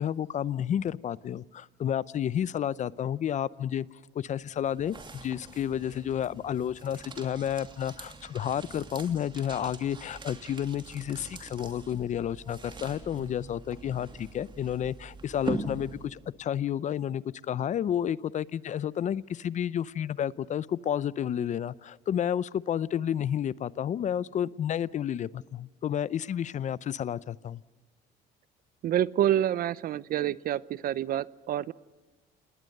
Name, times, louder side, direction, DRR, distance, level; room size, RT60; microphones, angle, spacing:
voice 1, 0.0-3.9 4.1-27.6, left 9 dB, 45° left, 0.6 m, -31 dB
sound 1, 4.2-16.4, right 3 dB, 30° right, 2.9 m, -43 dB
voice 2, 28.8-31.7, right 11 dB, 60° right, 0.7 m, -27 dB
28.5 x 19.5 x 6.6 m
cardioid pair, 110°, 17 cm